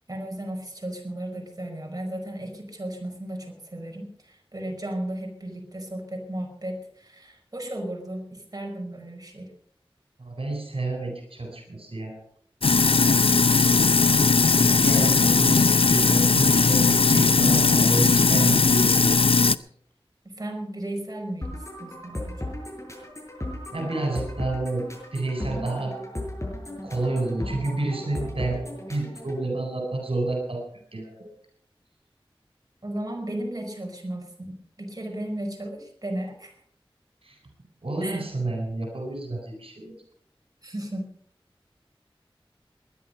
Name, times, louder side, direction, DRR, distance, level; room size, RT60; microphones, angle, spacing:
voice 1, 0.1-9.5 13.2-13.7 14.5-15.4 20.2-22.5 32.8-36.6 38.0-38.2 40.6-41.1, right 1 dB, 40° right, 1 dB, 5.3 m, -35 dB
voice 2, 10.2-12.2 14.5-19.3 23.7-24.8 25.1-26.0 26.8-30.6 30.9-31.2 37.2-37.4 37.8-39.9, right 2 dB, 80° right, 2 dB, 4.1 m, -30 dB
Sink (filling or washing), 12.6-19.6, left 4 dB, 75° left, 0.5 m, -19 dB
sound 1, 21.4-29.4, left 1 dB, 30° left, 6.6 m, -36 dB
20.5 x 10.5 x 5.6 m, 0.63 s
wide cardioid pair, 40°, 10 cm